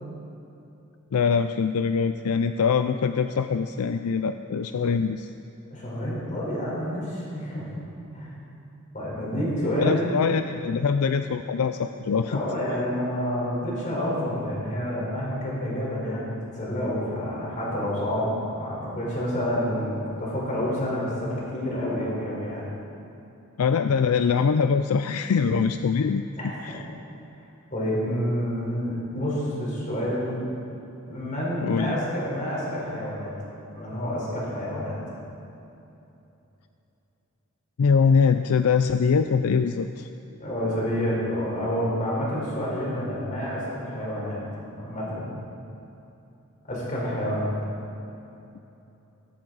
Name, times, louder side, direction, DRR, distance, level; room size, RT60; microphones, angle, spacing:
voice 1, 1.1-5.3 9.8-12.4 23.6-26.2 26.6-26.9 31.6-32.0 37.8-40.1, left 6 dB, 90° left, 9 dB, 0.4 m, -23 dB
voice 2, 5.7-7.7 8.1-8.4 8.9-10.1 12.2-22.7 26.4-26.8 27.7-30.4 31.1-33.3 33.7-35.0 40.4-44.4 44.8-45.3 46.6-47.5, equal, 35° left, -5 dB, 4.1 m, -28 dB
18.0 x 13.5 x 4.0 m, 2.9 s
head